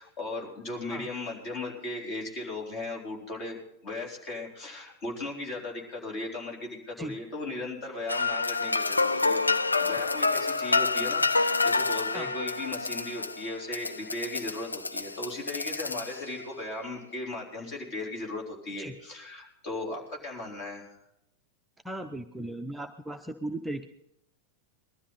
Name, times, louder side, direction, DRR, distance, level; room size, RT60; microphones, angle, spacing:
voice 1, 0.0-21.0, left 2 dB, 40° left, 0 dB, 4.0 m, -37 dB
sound 1, 8.1-16.4, left 3 dB, 80° left, 0.4 m, -28 dB
voice 2, 21.8-23.9, right 1 dB, 5° right, 5 dB, 0.7 m, -37 dB
20.5 x 12.5 x 4.1 m, 0.80 s
figure-of-eight pair, 90°, 0 cm